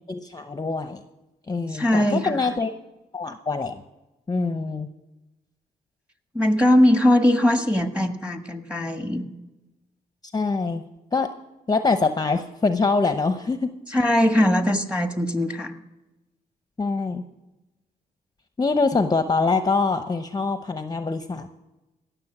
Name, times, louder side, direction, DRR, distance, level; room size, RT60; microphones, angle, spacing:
voice 1, 0.1-1.0 1.5-2.7 3.1-3.8 4.3-4.9 10.3-10.8 11.1-11.3 11.7-13.7 14.4-14.5 16.8-17.2 18.6-21.5, left 4 dB, 25° left, 8 dB, 0.7 m, -24 dB
voice 2, 1.7-2.5 6.3-9.2 13.9-15.7, left 1 dB, 5° right, 7 dB, 1.5 m, -20 dB
17.5 x 6.9 x 6.0 m, 1.0 s
cardioid pair, 70°, 17 cm